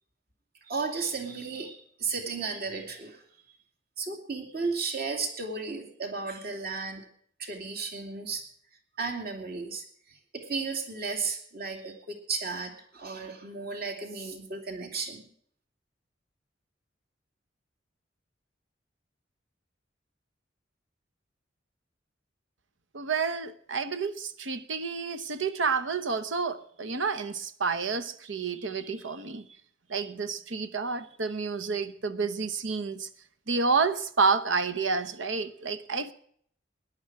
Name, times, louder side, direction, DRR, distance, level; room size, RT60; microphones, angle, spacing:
voice 1, 0.6-3.2 4.0-7.0 7.4-8.4 9.0-15.3, right 4 dB, 55° right, 2.4 m, -34 dB
voice 2, 22.9-29.5 29.9-33.1 33.5-36.1, right 4 dB, 90° right, 1.0 m, -29 dB
17.0 x 11.0 x 4.8 m
head